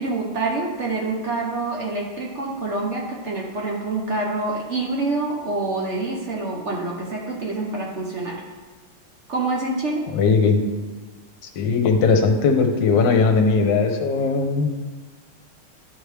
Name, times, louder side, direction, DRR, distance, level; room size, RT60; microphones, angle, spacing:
voice 1, 0.0-8.4 9.3-10.1, right 3 dB, 65° right, -2 dB, 0.6 m, -26 dB
voice 2, 10.1-10.6 11.5-14.7, left 4 dB, 65° left, 4 dB, 1.4 m, -19 dB
12.0 x 4.8 x 3.3 m, 1.4 s
omnidirectional pair, 2.4 m